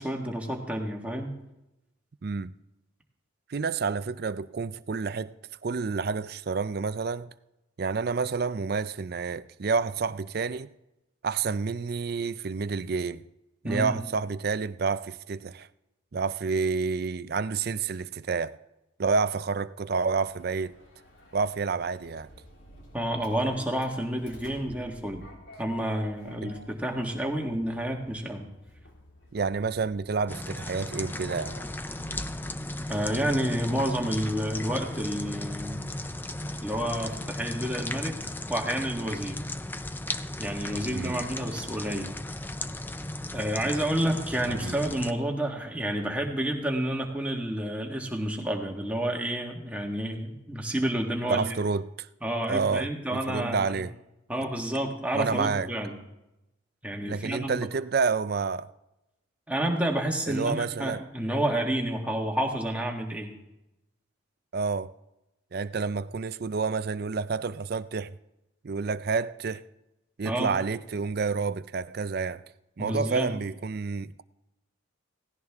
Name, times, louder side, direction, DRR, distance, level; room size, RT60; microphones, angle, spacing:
voice 1, 0.0-1.4 13.6-14.0 22.9-25.2 25.6-28.5 32.9-35.8 36.6-38.1 38.5-39.4 40.4-42.1 43.3-51.5 52.2-53.8 54.3-56.0 56.8-57.6 59.5-63.3 70.2-70.6 72.8-73.3, right 1 dB, 5° right, 1.6 m, -30 dB
voice 2, 2.2-2.5 3.5-5.4 5.6-7.3 7.8-10.7 11.2-13.2 13.6-15.7 16.1-18.6 19.0-20.8 21.3-22.3 26.4-26.5 29.3-31.6 40.9-41.2 44.5-44.8 51.3-52.1 52.5-53.9 55.1-55.7 57.1-58.7 60.3-61.0 64.5-64.9 65.5-68.2 68.6-69.6 70.2-72.4 72.8-74.2, right 4 dB, 50° right, 0.4 m, -29 dB
Sliding door, 20.1-39.7, equal, 70° left, 3.4 m, -52 dB
sound 1, 30.3-45.1, left 1 dB, 10° left, 0.4 m, -36 dB
17.5 x 17.0 x 3.6 m
head